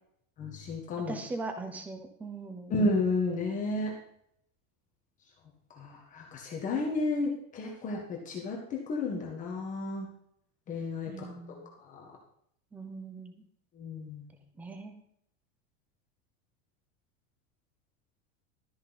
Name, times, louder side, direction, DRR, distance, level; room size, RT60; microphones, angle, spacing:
voice 1, 0.4-1.2 2.7-4.0 5.7-10.1 10.7-11.6 11.8-12.1 13.7-14.3, left 2 dB, 20° left, -1 dB, 1.6 m, -32 dB
voice 2, 1.1-2.7 11.1-11.7 12.7-13.4 14.6-15.0, right 3 dB, 5° right, 7 dB, 0.5 m, -40 dB
13.0 x 9.6 x 4.1 m, 0.70 s
supercardioid pair, 180°, 40 cm